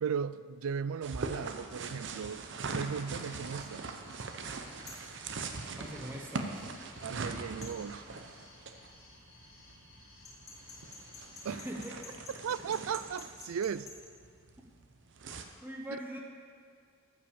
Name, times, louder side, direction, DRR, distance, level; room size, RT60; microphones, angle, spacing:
voice 1, 0.0-4.0 7.0-8.0 11.4-11.6 12.4-13.9, right 7 dB, 85° right, 0.4 m, -36 dB
sound 1, 1.0-15.4, right 3 dB, 60° right, 0.8 m, -42 dB
sound 2, 3.1-12.4, left 2 dB, 45° left, 2.5 m, -58 dB
sound 3, 4.9-5.1 7.6-7.8 10.2-14.0, left 3 dB, 15° left, 2.5 m, -49 dB
voice 2, 5.8-6.6 11.4-12.0 15.6-16.2, equal, 10° right, 0.9 m, -42 dB
13.5 x 5.8 x 7.1 m
head